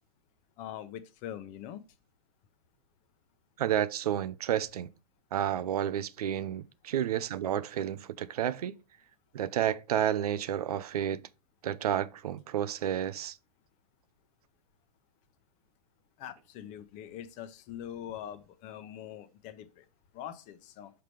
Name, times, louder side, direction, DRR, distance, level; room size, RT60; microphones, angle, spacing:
voice 1, 0.6-1.8 16.2-19.8 20.1-20.9, left 10 dB, 40° left, 0.8 m, -43 dB
voice 2, 3.6-4.9 5.3-8.8 9.3-11.2 11.6-13.3, right 10 dB, 75° right, 0.5 m, -31 dB
5.7 x 5.3 x 3.2 m
hypercardioid pair, 115°, 20 cm